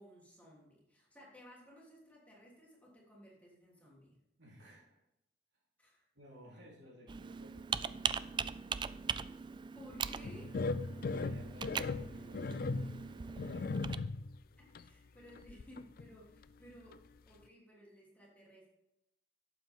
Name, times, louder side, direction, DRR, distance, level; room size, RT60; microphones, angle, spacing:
voice 1, 0.0-4.2 5.8-6.1 9.7-10.5 14.6-18.7, equal, 10° left, -5 dB, 3.3 m, -57 dB
voice 2, 4.4-5.0 6.1-8.5 10.1-10.3 11.0-14.0, equal, 90° right, -4 dB, 3.9 m, -58 dB
Computer keyboard, 7.1-14.0, right 6 dB, 25° right, 0.3 m, -40 dB
sound 1, 10.2-14.4 14.7-14.9 15.4-16.1 16.4-16.5 16.9-17.0, left 3 dB, 55° left, 0.4 m, -38 dB
12.0 x 8.4 x 3.7 m, 0.87 s
head